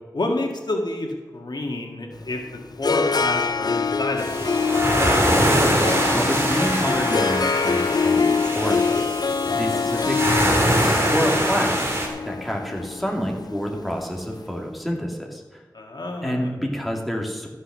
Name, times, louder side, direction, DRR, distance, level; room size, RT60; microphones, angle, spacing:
voice 1, 0.1-2.4 2.8-4.6 15.7-16.5, left 2 dB, 85° left, 2 dB, 1.7 m, -28 dB
Harp, 2.1-14.3, left 5 dB, 70° left, 0.5 m, -24 dB
sound 1, 4.2-12.1, right 1 dB, 35° right, 2.5 m, -23 dB
voice 2, 5.2-15.6 16.2-17.5, equal, ahead, 0 dB, 2.2 m, -29 dB
13.5 x 6.4 x 6.1 m, 1.3 s
wide cardioid pair, 60°, 7 cm